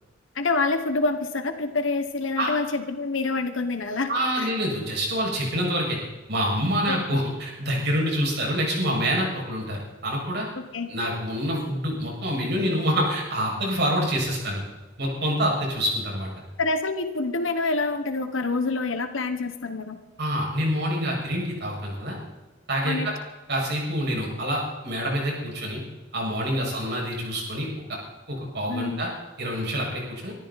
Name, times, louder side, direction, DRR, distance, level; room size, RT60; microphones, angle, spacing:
voice 1, 0.3-4.1 4.4-4.5 6.9-7.2 10.5-10.9 16.6-20.0 22.8-23.1 28.7-29.0, left 3 dB, 80° left, 8 dB, 1.3 m, -27 dB
voice 2, 4.1-6.0 6.3-10.5 10.9-14.6 15.0-16.3 20.2-22.2 22.7-23.1 23.5-25.8 26.1-27.7 28.3-29.1 29.4-30.3, equal, 60° right, -1 dB, 6.7 m, -26 dB
24.5 x 14.0 x 4.3 m, 1.1 s
head